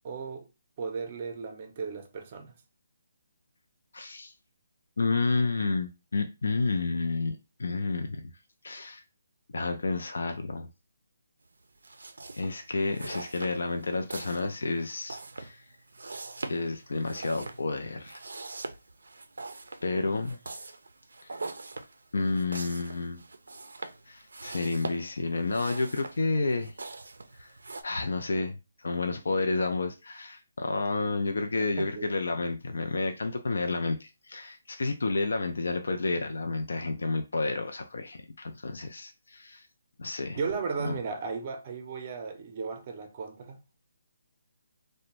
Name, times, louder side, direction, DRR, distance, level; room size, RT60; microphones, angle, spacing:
voice 1, 0.0-0.5 0.8-2.5 32.0-32.1 40.4-43.8, right 5 dB, 35° right, 0.5 m, -35 dB
voice 2, 3.9-4.3 5.0-8.2 8.6-9.0 9.5-10.7 12.3-15.6 16.5-18.2 19.8-20.4 21.3-21.4 22.1-23.2 24.1-26.7 27.4-27.5 27.8-39.6 40.0-40.4 40.8-41.0, left 3 dB, 75° left, 0.4 m, -30 dB
sound 1, 11.8-27.8, right 3 dB, 85° right, 0.4 m, -43 dB
2.5 x 2.1 x 2.9 m
hypercardioid pair, 160°, 0 cm